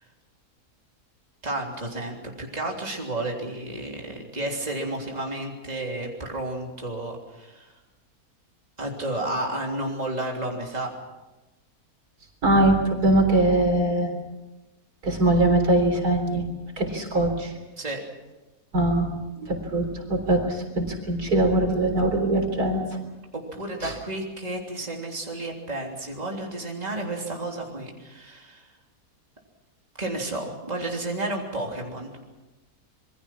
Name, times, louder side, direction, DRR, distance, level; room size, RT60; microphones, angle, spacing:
voice 1, 1.4-7.7 8.8-10.9 17.8-18.0 23.3-28.7 30.0-32.1, right 2 dB, 25° right, 0 dB, 3.5 m, -32 dB
voice 2, 12.4-14.1 15.0-16.4 16.8-17.5 18.7-19.1 19.4-22.8 23.8-23.9, right 1 dB, 75° right, 4 dB, 4.3 m, -22 dB
26.5 x 22.5 x 6.0 m, 1.1 s
omnidirectional pair, 1.6 m